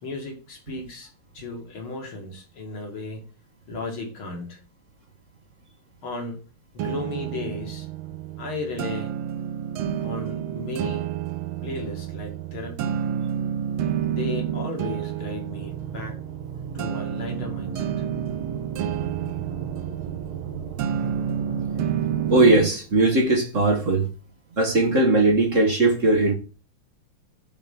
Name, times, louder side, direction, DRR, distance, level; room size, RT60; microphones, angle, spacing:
voice 1, 0.0-3.3 3.7-4.6 6.0-6.4 6.7-7.9 8.4-9.2 10.0-11.1 11.6-13.0 14.0-16.2 16.7-18.0, left 3 dB, 80° left, 3.0 m, -35 dB
sound 1, 6.8-22.8, right 9 dB, 90° right, 1.6 m, -30 dB
sound 2, 15.5-22.6, right 5 dB, 55° right, 1.4 m, -37 dB
voice 2, 22.3-24.1 24.6-26.3, right 2 dB, 40° right, 1.7 m, -19 dB
9.1 x 4.3 x 5.5 m
omnidirectional pair, 2.2 m